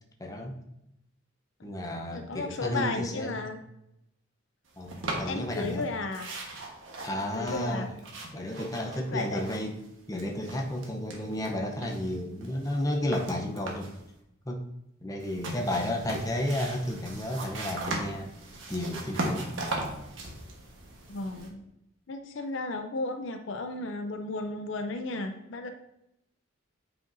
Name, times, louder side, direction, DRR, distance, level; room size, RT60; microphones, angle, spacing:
voice 1, 0.2-0.5 1.6-3.5 4.8-5.9 7.0-8.0 8.3-9.8 10.1-14.0 14.4-14.7 15.0-18.3 18.7-19.5, left 1 dB, 15° left, 1 dB, 0.7 m, -32 dB
voice 2, 2.1-3.6 5.3-6.3 7.3-7.8 9.1-9.4 21.1-21.6 22.1-25.7, left 2 dB, 60° left, 6 dB, 0.5 m, -34 dB
sound 1, 4.9-5.8 6.1-9.9 10.1-11.5 11.8-14.0 15.2-21.5, right 2 dB, 65° right, 1.3 m, -38 dB
8.9 x 5.0 x 2.6 m, 0.84 s
head